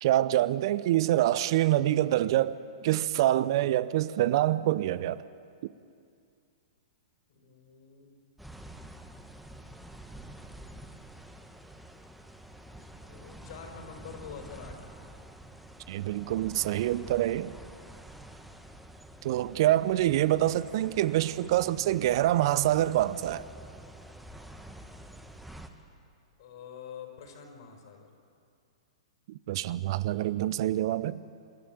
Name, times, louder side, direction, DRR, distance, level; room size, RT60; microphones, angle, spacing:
voice 1, 0.0-5.2 15.9-17.5 19.2-23.4 29.3-31.2, right 14 dB, 55° right, 0.7 m, -26 dB
voice 2, 7.3-8.1 12.7-14.8 26.4-28.1, left 7 dB, 60° left, 5.1 m, -46 dB
sound 1, 8.4-25.7, right 1 dB, ahead, 1.5 m, -48 dB
26.5 x 13.5 x 9.3 m
figure-of-eight pair, 110°, 3 cm